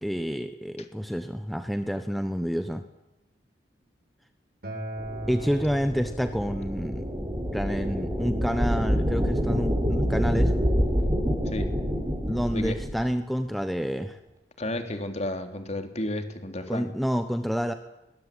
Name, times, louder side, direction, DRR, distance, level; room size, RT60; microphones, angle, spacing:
voice 1, 0.0-2.8 5.3-7.0 7.5-10.5 12.3-14.2 16.7-17.7, equal, ahead, 8 dB, 1.2 m, -28 dB
Acoustic guitar, 4.6-9.8, right 1 dB, 60° right, 7.8 m, -41 dB
sound 1, 5.0-13.0, equal, 20° right, 5.5 m, -27 dB
voice 2, 14.6-16.9, left 1 dB, 40° left, 6 dB, 3.5 m, -32 dB
22.0 x 21.0 x 10.0 m, 0.97 s
head